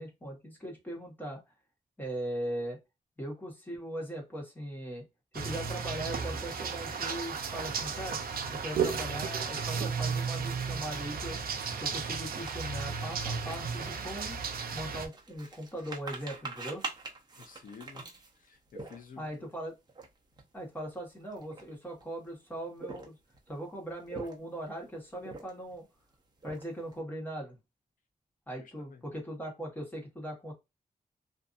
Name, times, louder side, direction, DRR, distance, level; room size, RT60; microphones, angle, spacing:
voice 1, 0.0-1.4 2.0-2.8 3.2-5.0 5.3-8.2 8.5-11.4 11.7-14.4 14.7-16.8 19.2-19.7 20.5-23.1 23.5-25.9 26.4-27.6 28.5-30.5, right 1 dB, 10° left, 1.2 m, -39 dB
sound 1, 5.3-15.1, right 5 dB, 80° right, 0.5 m, -34 dB
sound 2, 12.5-19.4 19.9-20.1 20.3-20.5 21.2-22.0 22.7-23.4 23.9-24.7 25.2-25.8 26.1-26.9, right 3 dB, 30° right, 0.7 m, -44 dB
voice 2, 17.4-18.0 18.4-19.3 28.5-29.0, left 6 dB, 65° left, 0.5 m, -51 dB
2.5 x 2.5 x 2.4 m
wide cardioid pair, 165°, 15 cm